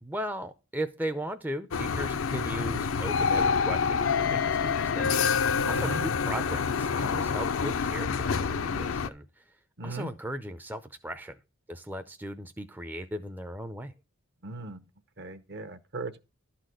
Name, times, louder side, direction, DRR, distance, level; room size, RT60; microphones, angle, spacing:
voice 1, 0.0-9.6 9.8-11.4 11.7-13.9, right 1 dB, 10° right, 0.5 m, -37 dB
sound 1, 1.7-9.1, left 5 dB, 75° left, 0.6 m, -27 dB
voice 2, 9.8-10.1 14.4-14.8 15.2-16.2, right 2 dB, 50° right, 0.9 m, -37 dB
12.0 x 4.2 x 7.7 m
head